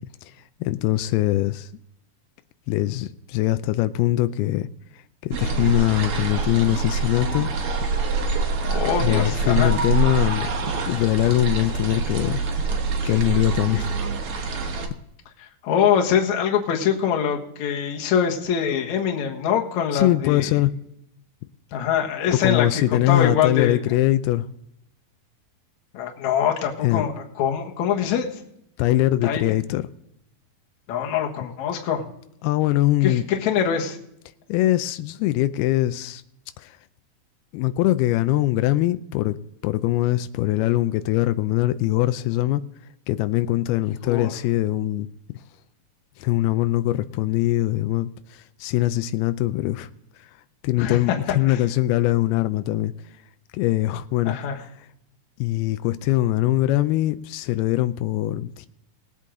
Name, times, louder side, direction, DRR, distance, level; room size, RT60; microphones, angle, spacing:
voice 1, 0.6-1.7 2.7-4.7 5.2-7.5 9.0-10.5 10.9-12.4 13.0-13.9 19.9-20.7 22.3-24.5 26.8-27.1 28.8-29.9 32.4-33.3 34.5-36.2 36.6-36.8 37.5-39.4 39.6-42.6 43.1-45.1 46.2-49.9 50.6-52.9 53.5-54.7 55.4-58.7, left 15 dB, 90° left, 2.5 m, -22 dB
sound 1, 5.3-14.9, right 4 dB, 65° right, 1.4 m, -25 dB
voice 2, 8.6-9.7 15.4-20.6 21.7-22.7 22.9-23.8 25.9-28.3 29.2-29.4 30.9-32.0 33.0-34.0 44.0-44.3 50.8-51.0 51.5-51.6 54.2-54.6, left 8 dB, 60° left, 2.4 m, -24 dB
20.5 x 8.3 x 3.8 m
omnidirectional pair, 4.4 m